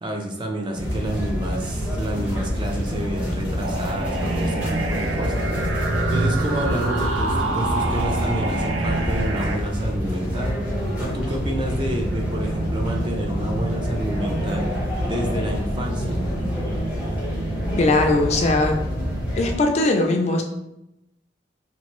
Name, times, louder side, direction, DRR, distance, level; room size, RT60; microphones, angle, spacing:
voice 1, 0.0-5.7 6.1-10.7 11.0-14.7 15.0-16.2, right 1 dB, 25° right, 2 dB, 0.4 m, -29 dB
sound 1, 0.7-19.6, equal, 10° right, 0.8 m, -27 dB
sound 2, 3.6-9.6, right 2 dB, 85° right, 0.5 m, -26 dB
voice 2, 17.8-18.8 19.4-20.4, left 2 dB, 35° left, 3 dB, 0.3 m, -19 dB
3.0 x 2.5 x 2.9 m, 0.86 s
head